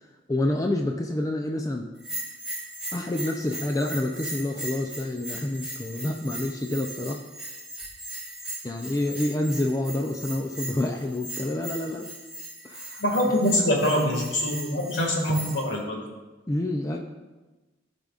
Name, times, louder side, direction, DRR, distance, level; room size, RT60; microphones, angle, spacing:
voice 1, 0.3-1.9 2.9-7.2 8.6-12.1 12.6-13.0 13.7-13.8 16.5-17.0, left 1 dB, 20° left, 3 dB, 0.4 m, -28 dB
Bell, 2.0-15.7, right 1 dB, 5° right, 2.0 m, -38 dB
voice 2, 13.0-16.0, left 1 dB, 65° left, -1 dB, 1.9 m, -24 dB
15.0 x 5.2 x 2.4 m, 1.2 s
head